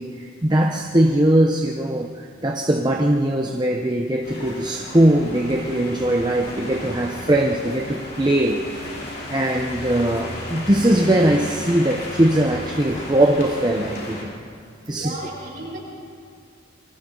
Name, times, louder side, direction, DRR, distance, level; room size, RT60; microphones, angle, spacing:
voice 1, 0.0-8.6 9.0-14.3 14.9-15.1, right 1 dB, 20° right, 1 dB, 0.9 m, -20 dB
sound 1, 4.2-14.2, left 1 dB, 55° left, 4.1 m, -34 dB
voice 2, 14.9-15.8, right 2 dB, 45° right, -6 dB, 7.9 m, -33 dB
28.5 x 24.0 x 4.0 m, 2.3 s
head